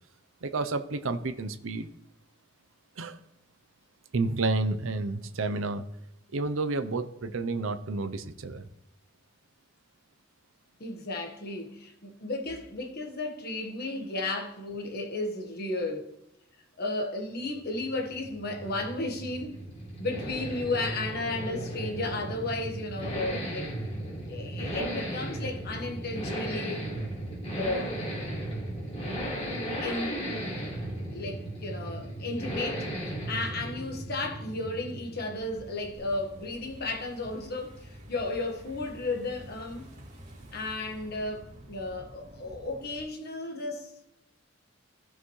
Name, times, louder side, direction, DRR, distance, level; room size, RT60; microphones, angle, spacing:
voice 1, 0.4-1.9 3.0-3.2 4.1-5.8 6.3-8.7 26.5-26.6, right 3 dB, 80° right, 0.7 m, -30 dB
voice 2, 10.8-16.1 16.8-19.6 20.0-23.7 24.3-26.9 27.6-28.0 29.8-30.2 31.1-32.9 33.3-39.8 40.5-44.0, left 2 dB, 55° left, 1.5 m, -34 dB
sound 1, 17.5-35.5, right 1 dB, 35° left, 4.3 m, -36 dB
sound 2, 35.4-43.0, equal, 40° right, 2.4 m, -49 dB
15.5 x 5.8 x 3.2 m
head